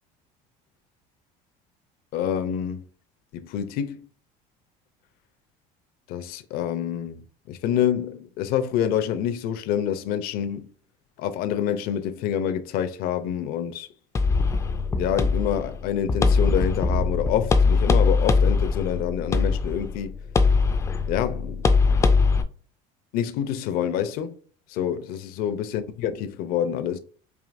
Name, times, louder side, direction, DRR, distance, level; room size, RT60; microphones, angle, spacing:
voice 1, 2.1-2.8 3.3-4.1 6.1-10.7 11.2-13.9 15.0-20.1 21.1-22.0 23.1-24.4 24.7-27.0, left 9 dB, 60° left, 0.6 m, -27 dB
sound 1, 14.2-22.4, left 4 dB, 15° left, 0.3 m, -21 dB
4.9 x 2.9 x 2.5 m
cardioid pair, 145°, 17 cm